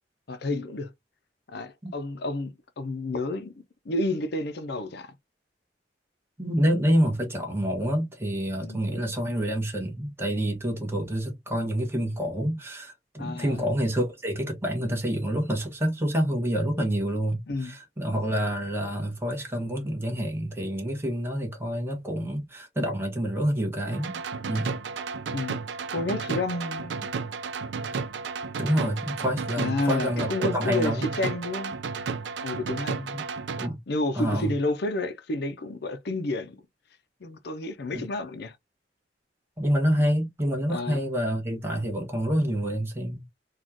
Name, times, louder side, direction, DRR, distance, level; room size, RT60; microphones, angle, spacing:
voice 1, 0.3-0.9 1.5-3.5 3.9-5.2 8.6-8.8 13.2-13.6 17.5-17.8 25.3-25.6 25.9-27.1 29.6-31.7 32.4-33.2 33.9-36.6 37.2-38.6 40.7-41.0, left 2 dB, 65° left, 0.6 m, -30 dB
voice 2, 6.4-24.2 24.5-24.7 28.6-31.1 33.1-33.2 33.6-33.8 34.1-34.5 37.9-38.0 39.6-43.2, equal, 15° right, 1.4 m, -27 dB
sound 1, 23.9-33.7, right 5 dB, 90° right, 0.5 m, -33 dB
4.2 x 2.4 x 2.9 m
head